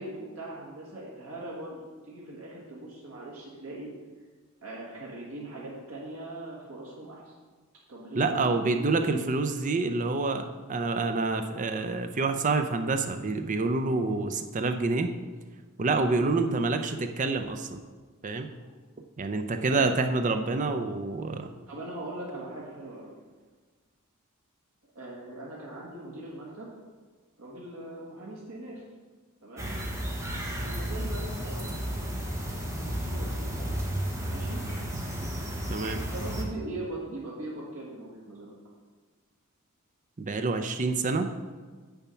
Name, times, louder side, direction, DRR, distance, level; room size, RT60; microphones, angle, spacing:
voice 1, 0.0-3.9 4.6-7.3 7.9-9.3 19.7-20.0 21.7-23.1 24.9-26.7 27.4-28.8 29.4-29.7 30.5-32.4 32.8-33.8 34.3-34.6 36.1-38.5, right 1 dB, 80° right, -5 dB, 1.7 m, -40 dB
voice 2, 8.2-15.1 15.8-17.8 18.2-18.5 19.2-21.5 35.7-36.0 40.2-41.3, right 3 dB, 35° right, 7 dB, 0.5 m, -27 dB
sound 1, 29.6-36.4, equal, 15° right, 1.1 m, -33 dB
7.3 x 7.0 x 5.6 m, 1.4 s
head